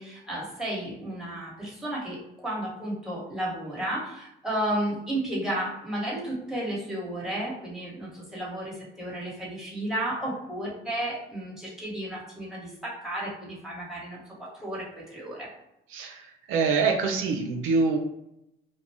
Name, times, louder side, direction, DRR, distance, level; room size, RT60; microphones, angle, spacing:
voice 1, 0.0-15.5, right 1 dB, ahead, -6 dB, 1.3 m, -33 dB
voice 2, 15.9-18.0, right 4 dB, 90° right, 2 dB, 0.5 m, -25 dB
2.4 x 2.1 x 3.4 m, 0.83 s
cardioid pair, 90°, 20 cm